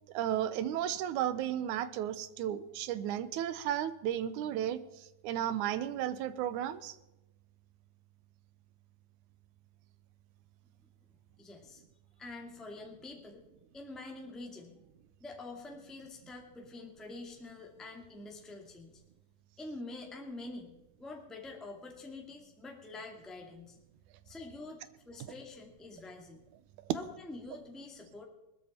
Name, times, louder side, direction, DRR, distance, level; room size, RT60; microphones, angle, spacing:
voice 1, 0.1-7.0 25.2-25.3 26.9-27.0, right 11 dB, 90° right, 14 dB, 2.3 m, -34 dB
voice 2, 11.4-11.8 12.2-13.4 13.7-14.8 15.2-18.9 19.6-23.8 24.3-26.4 26.9-28.2, left 2 dB, ahead, 1 dB, 1.8 m, -46 dB
20.5 x 13.0 x 4.4 m, 0.96 s
omnidirectional pair, 3.4 m